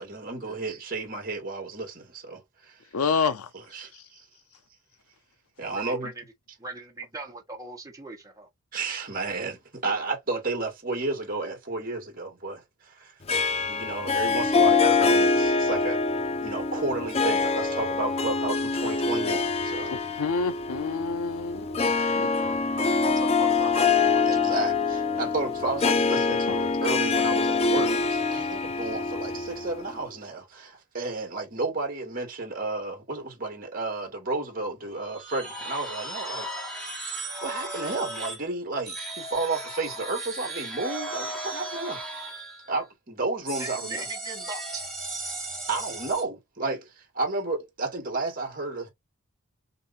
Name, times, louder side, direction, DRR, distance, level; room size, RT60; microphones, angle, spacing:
voice 1, 0.0-2.8 3.7-4.2 5.6-6.1 8.7-13.1 13.7-19.9 24.2-36.5 37.4-42.3 42.7-44.0 45.7-48.9, right 3 dB, 40° right, 2.3 m, -32 dB
voice 2, 2.9-3.5 3.9-4.0 19.9-22.3 26.5-26.6, left 5 dB, 90° left, 0.6 m, -29 dB
voice 3, 5.7-6.2 6.6-8.5 22.3-24.7 43.6-44.9, right 2 dB, 15° right, 1.2 m, -40 dB
Harp, 13.3-30.0, left 4 dB, 30° left, 0.4 m, -25 dB
sound 1, 35.0-38.4 38.9-42.8 43.5-46.2, right 2 dB, 5° left, 1.5 m, -36 dB
6.5 x 2.7 x 2.7 m
head